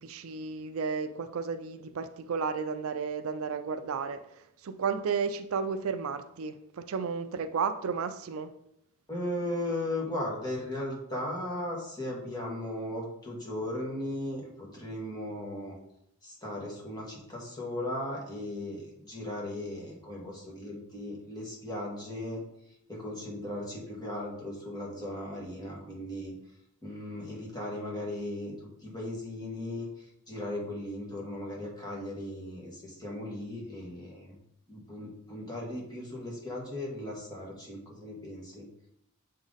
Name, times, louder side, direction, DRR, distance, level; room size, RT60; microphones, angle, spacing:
voice 1, 0.0-4.2 4.6-8.5, right 5 dB, 70° right, 0.4 m, -33 dB
voice 2, 9.1-15.8 16.2-22.4 22.9-26.3 26.8-34.3 34.7-38.7, left 1 dB, 20° left, 1.6 m, -37 dB
7.1 x 3.8 x 4.0 m
head